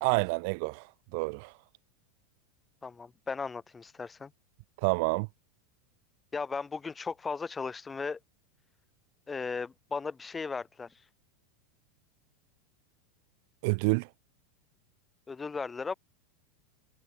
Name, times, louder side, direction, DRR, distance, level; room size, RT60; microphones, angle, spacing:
voice 1, 0.0-0.9 1.1-1.5 4.8-5.3 13.6-14.1, right 32 dB, 55° right, 0.3 m, -28 dB
voice 2, 2.8-4.3 6.3-8.2 9.3-10.9 15.3-15.9, left 4 dB, 15° left, 2.1 m, -36 dB
supercardioid pair, 145°, 0 cm